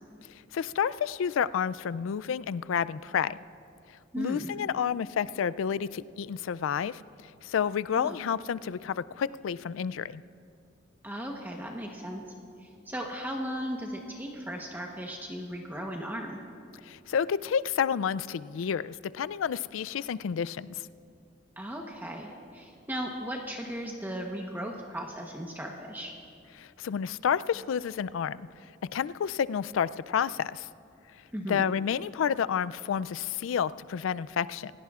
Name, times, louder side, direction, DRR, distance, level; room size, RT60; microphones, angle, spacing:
voice 1, 0.5-3.4 4.2-7.0 7.4-10.2 16.8-20.8 26.6-28.5 28.9-30.7 31.5-34.7, left 7 dB, 90° left, 17 dB, 0.3 m, -30 dB
voice 2, 4.1-4.5 7.9-8.2 11.0-12.2 12.6-16.4 21.6-26.1 31.3-31.6, equal, 10° right, 0 dB, 1.0 m, -36 dB
27.5 x 17.0 x 2.4 m, 2.5 s
head